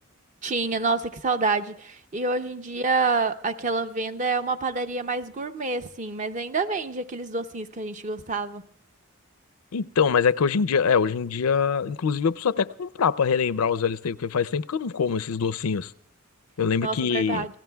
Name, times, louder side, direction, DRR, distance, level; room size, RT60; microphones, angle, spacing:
voice 1, 0.4-8.7 16.8-17.5, right 3 dB, 35° right, 0.6 m, -27 dB
voice 2, 9.7-15.9 16.6-17.5, left 6 dB, 80° left, 0.5 m, -24 dB
29.5 x 17.0 x 2.3 m
head